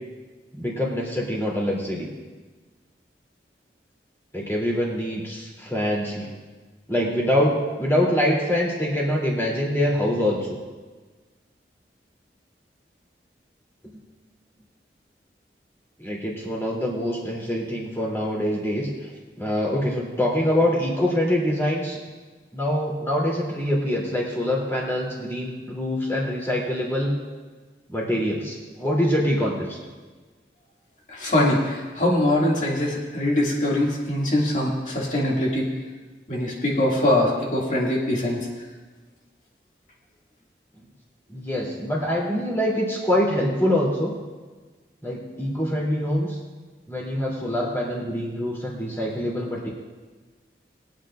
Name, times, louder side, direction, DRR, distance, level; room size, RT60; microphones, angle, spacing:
voice 1, 0.5-2.1 4.3-6.3 6.9-10.6 16.0-18.9 19.4-22.0 22.5-27.1 27.9-29.8 41.3-44.1 45.0-46.4 46.9-49.7, left 1 dB, 15° left, -4 dB, 2.9 m, -24 dB
voice 2, 31.1-35.6 36.3-38.5, left 1 dB, 45° left, -3 dB, 2.3 m, -22 dB
22.5 x 9.1 x 2.5 m, 1.3 s
head